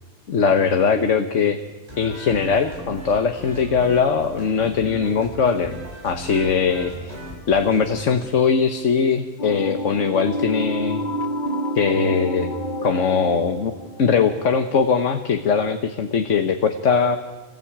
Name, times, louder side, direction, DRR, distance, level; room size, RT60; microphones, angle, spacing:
voice 1, 0.3-1.6 2.0-7.2 7.5-11.0 11.7-12.5 12.8-13.7 14.0-17.2, left 6 dB, 70° left, 7 dB, 1.5 m, -20 dB
sound 1, 1.8-8.1, right 1 dB, 30° right, 6.2 m, -38 dB
sound 2, 9.4-14.7, equal, 40° left, 1.3 m, -29 dB
26.5 x 20.5 x 8.7 m, 1.2 s
omnidirectional pair, 1.3 m